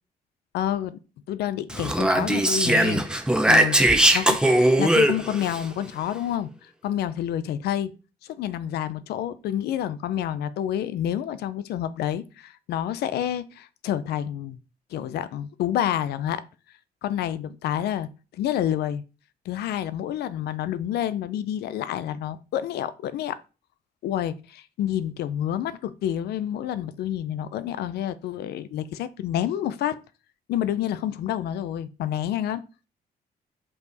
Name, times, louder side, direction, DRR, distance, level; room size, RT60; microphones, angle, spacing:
voice 1, 0.5-1.0 1.3-3.0 3.4-6.5 6.8-7.9 8.2-14.6 14.9-16.4 17.0-19.0 19.5-23.4 24.0-30.0 30.5-32.6, left 11 dB, 90° left, 0.5 m, -28 dB
Speech, 1.7-5.6, right 1 dB, 5° right, 0.7 m, -20 dB
5.4 x 4.8 x 4.0 m
cardioid pair, 125°, 16 cm